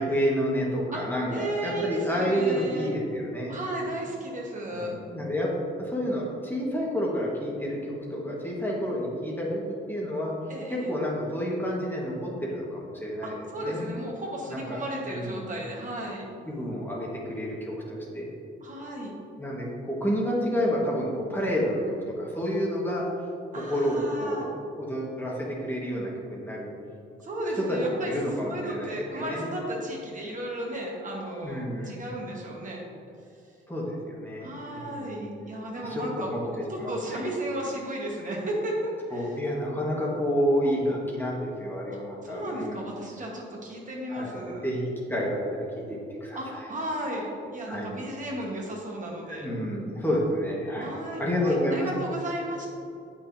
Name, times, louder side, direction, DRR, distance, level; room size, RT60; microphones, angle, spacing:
voice 1, 0.0-3.6 4.7-5.5 5.8-10.3 10.7-13.3 13.6-13.9 14.5-15.6 16.5-18.3 19.4-23.0 23.5-26.7 27.7-29.4 31.4-32.1 33.7-35.1 35.8-37.2 39.1-42.9 44.1-46.7 47.7-47.9 49.3-50.9 51.2-51.9, equal, 10° left, -4 dB, 1.5 m, -29 dB
voice 2, 1.3-2.9 3.5-4.9 10.5-10.9 13.2-16.2 18.6-19.1 23.5-24.5 27.2-28.1 28.4-32.8 34.4-39.3 41.9-44.7 46.3-49.5 50.8-52.7, right 1 dB, 40° right, -2 dB, 1.4 m, -34 dB
8.0 x 5.9 x 2.7 m, 2.6 s
cardioid pair, 90°, 20 cm